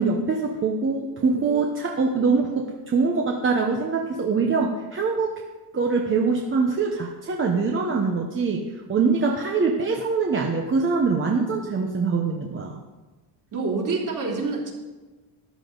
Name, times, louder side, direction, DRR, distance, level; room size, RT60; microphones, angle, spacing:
voice 1, 0.0-5.4 5.7-12.8, right 4 dB, 25° right, 1 dB, 1.1 m, -23 dB
voice 2, 13.5-14.7, right 3 dB, 45° right, -2 dB, 3.5 m, -26 dB
13.5 x 11.5 x 3.9 m, 1.2 s
cardioid pair, 135°, 44 cm